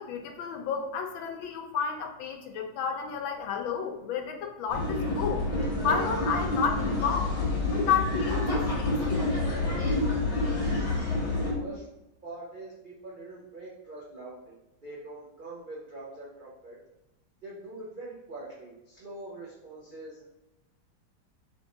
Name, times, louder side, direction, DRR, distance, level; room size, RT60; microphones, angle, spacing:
voice 1, 0.0-5.5 5.8-7.3 7.7-9.3, left 6 dB, 80° left, 3 dB, 1.4 m, -31 dB
sound 1, 4.7-11.5, left 2 dB, 35° left, 1.4 m, -28 dB
voice 2, 10.4-11.9 12.2-14.6 14.8-16.8 17.4-20.2, right 2 dB, 80° right, -6 dB, 0.4 m, -44 dB
3.7 x 3.5 x 3.8 m, 0.93 s
omnidirectional pair, 2.2 m